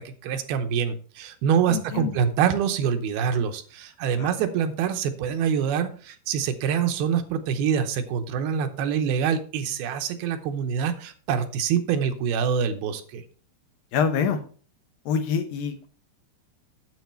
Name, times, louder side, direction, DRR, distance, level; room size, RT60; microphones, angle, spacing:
voice 1, 0.0-13.2, right 7 dB, 80° right, 8 dB, 2.7 m, -25 dB
voice 2, 1.7-2.2 4.2-4.3 13.9-14.4 15.1-15.9, left 6 dB, 75° left, 7 dB, 2.5 m, -26 dB
9.3 x 7.7 x 4.3 m, 0.42 s
omnidirectional pair, 4.6 m